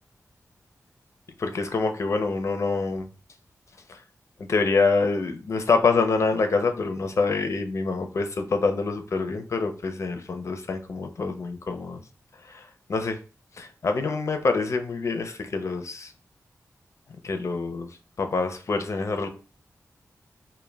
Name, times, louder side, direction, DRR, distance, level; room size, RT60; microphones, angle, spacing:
voice 1, 1.4-3.1 3.9-4.0 4.4-12.0 12.5-12.6 12.9-13.2 13.6-16.1 17.2-17.9 18.2-19.3, left 4 dB, 55° left, 6 dB, 0.4 m, -26 dB
2.2 x 2.1 x 3.2 m, 0.36 s
wide cardioid pair, 85°, 6 cm